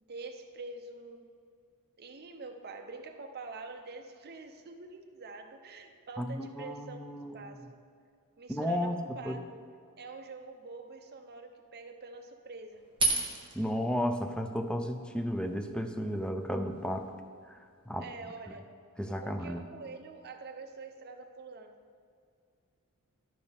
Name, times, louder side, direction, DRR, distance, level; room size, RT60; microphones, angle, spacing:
voice 1, 0.1-1.2 2.0-7.1 7.3-7.8 8.4-9.6 10.0-12.9 18.0-18.6 19.2-21.8, right 3 dB, 45° right, 4 dB, 0.7 m, -46 dB
voice 2, 6.2-7.5 8.5-9.0 9.2-9.4 13.5-17.1 17.9-18.1 19.0-19.6, equal, 5° left, 6 dB, 0.4 m, -33 dB
sound 1, 12.7-17.9, right 2 dB, 25° right, 1.0 m, -37 dB
12.0 x 5.3 x 3.4 m, 2.3 s
head